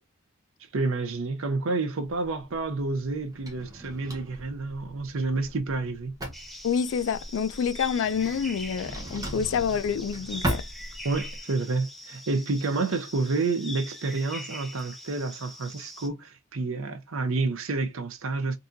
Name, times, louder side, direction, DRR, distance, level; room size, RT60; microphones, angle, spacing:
voice 1, 0.7-6.2 11.0-18.6, right 3 dB, 60° right, 0.6 m, -29 dB
Drawer open or close, 2.0-11.4, right 1 dB, 15° right, 0.8 m, -38 dB
sound 1, 6.3-16.1, left 1 dB, ahead, 0.5 m, -43 dB
voice 2, 6.6-10.6, left 7 dB, 60° left, 0.3 m, -27 dB
3.6 x 2.7 x 2.6 m
head